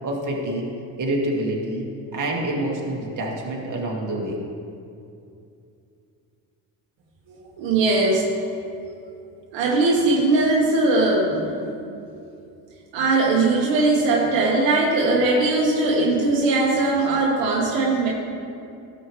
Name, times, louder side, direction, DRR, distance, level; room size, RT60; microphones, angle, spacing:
voice 1, 0.0-0.7 1.0-1.8 2.1-4.4, right 1 dB, 40° right, -2 dB, 2.0 m, -26 dB
voice 2, 7.3-8.3 8.8-8.9 9.5-11.8 12.9-18.1, right 2 dB, 75° right, -3 dB, 1.5 m, -20 dB
12.5 x 6.9 x 3.2 m, 2.6 s
supercardioid pair, 75°, 45 cm